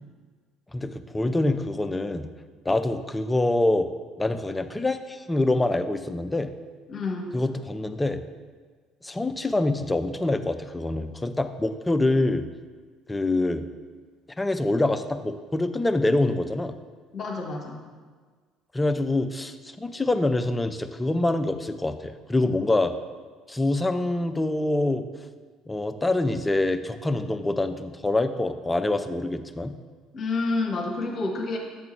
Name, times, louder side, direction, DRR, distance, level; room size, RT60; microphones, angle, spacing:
voice 1, 0.7-2.3 2.7-3.9 4.2-6.5 7.3-8.2 9.0-12.5 13.1-13.6 14.4-16.8 18.7-22.9 23.5-25.1 25.7-29.7, left 2 dB, 15° left, 9 dB, 0.4 m, -25 dB
voice 2, 6.9-7.3 17.1-17.8 30.1-31.6, left 3 dB, 45° left, 0 dB, 1.0 m, -29 dB
7.8 x 3.8 x 4.5 m, 1.5 s
figure-of-eight pair, 55°, 0 cm